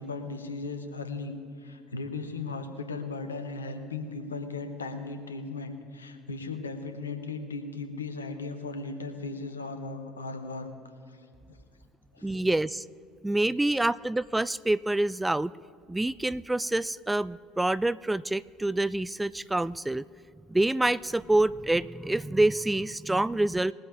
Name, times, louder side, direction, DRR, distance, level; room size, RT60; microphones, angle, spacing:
voice 1, 0.0-10.7 11.1-11.6 12.1-12.6 13.4-13.8, left 3 dB, 85° left, 7 dB, 1.1 m, -37 dB
voice 2, 12.2-12.8 13.2-15.5 15.9-20.0 20.5-23.7, right 2 dB, 10° right, 19 dB, 0.3 m, -26 dB
21.0 x 7.9 x 3.9 m, 2.3 s
figure-of-eight pair, 65°, 0 cm